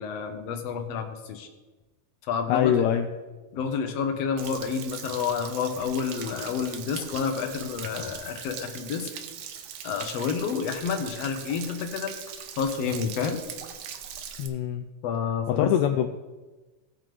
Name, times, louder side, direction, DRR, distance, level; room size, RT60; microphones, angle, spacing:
voice 1, 0.0-1.5 2.3-2.9 3.5-9.1 9.8-12.1 12.6-13.4 15.0-15.7, left 6 dB, 65° left, 6 dB, 1.8 m, -29 dB
voice 2, 2.5-3.1 14.4-14.9 15.5-16.1, left 10 dB, 85° left, 7 dB, 1.6 m, -23 dB
Stream / Splash splatter / Trickle dribble, 4.4-14.5, right 8 dB, 70° right, 2.0 m, -40 dB
18.0 x 7.4 x 3.4 m, 1.2 s
omnidirectional pair, 3.8 m